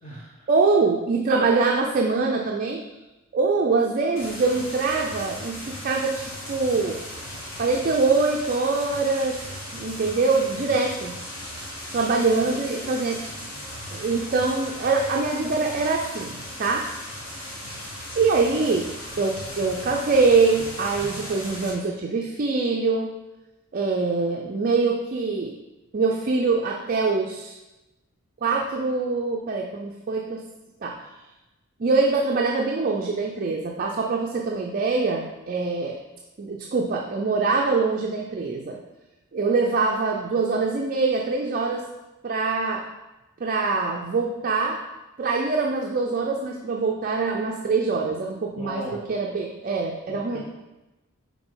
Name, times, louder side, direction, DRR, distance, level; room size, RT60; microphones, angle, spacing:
voice 1, 0.5-2.8 3.3-7.0 7.6-9.4 9.7-11.2 11.9-13.2 13.9-16.8 18.1-18.9 19.2-23.1 23.7-25.5 25.9-27.5 28.4-30.4 30.8-31.0 31.8-36.0 36.4-38.8 39.3-41.8 42.2-42.8 43.4-44.8 45.2-50.4, right 4 dB, 40° right, 0 dB, 0.5 m, -24 dB
sound 1, 4.2-21.7, left 1 dB, 85° left, 2.1 m, -37 dB
voice 2, 12.4-12.9 48.6-49.0 50.1-50.4, left 1 dB, 30° left, -4 dB, 1.5 m, -37 dB
5.9 x 4.3 x 3.9 m, 1.0 s
head